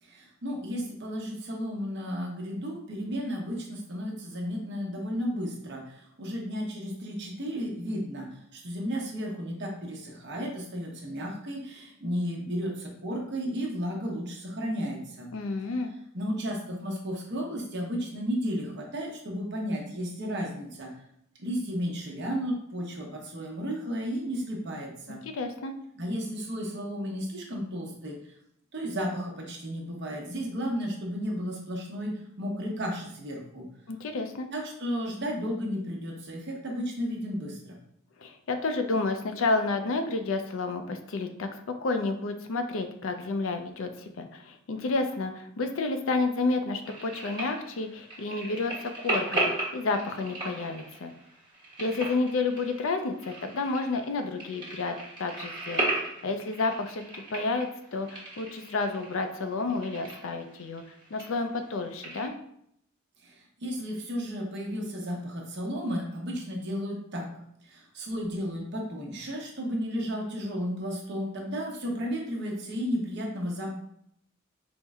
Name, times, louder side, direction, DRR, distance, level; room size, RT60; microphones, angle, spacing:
voice 1, 0.0-15.3 16.1-20.9 21.4-25.2 25.9-28.2 28.7-33.7 34.5-37.8 63.2-67.3 67.6-73.7, equal, 55° right, -1 dB, 0.9 m, -33 dB
voice 2, 15.3-15.9 25.2-25.7 33.9-34.5 38.2-51.1 51.8-55.9 56.2-60.8 61.1-62.3, left 3 dB, 65° left, 6 dB, 0.4 m, -30 dB
sound 1, 46.8-62.3, right 2 dB, 25° right, 1.2 m, -36 dB
4.4 x 2.1 x 3.5 m, 0.73 s
head